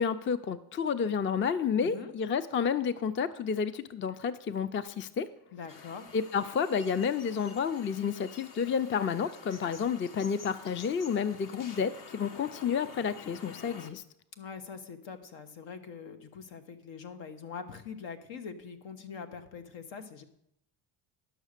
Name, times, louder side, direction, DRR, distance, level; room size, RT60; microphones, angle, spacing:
voice 1, 0.0-5.3 6.1-14.0, left 6 dB, 25° left, 15 dB, 0.5 m, -30 dB
voice 2, 1.8-2.1 5.5-6.1 14.4-20.2, left 6 dB, 70° left, 8 dB, 1.3 m, -43 dB
sound 1, 5.7-13.9, left 5 dB, 45° left, 1.1 m, -49 dB
11.0 x 6.4 x 6.6 m, 0.77 s
cardioid pair, 95°, 45 cm